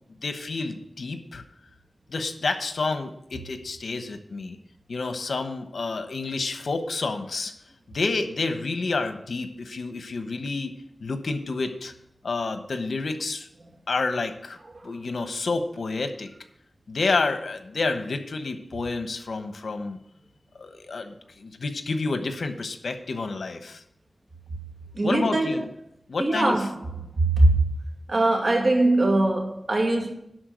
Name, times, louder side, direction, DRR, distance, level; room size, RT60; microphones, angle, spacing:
voice 1, 0.2-1.4 2.1-4.6 4.9-7.5 7.9-10.7 11.0-11.9 12.2-13.5 13.9-14.6 14.8-16.3 16.9-20.0 20.6-23.8 25.0-25.7 26.1-26.6, left 3 dB, 85° left, 1.0 m, -29 dB
voice 2, 24.9-25.7 26.2-26.8 27.2-27.6 28.1-30.1, right 2 dB, 55° right, 2.2 m, -22 dB
11.0 x 4.4 x 7.8 m
wide cardioid pair, 65°, 0 cm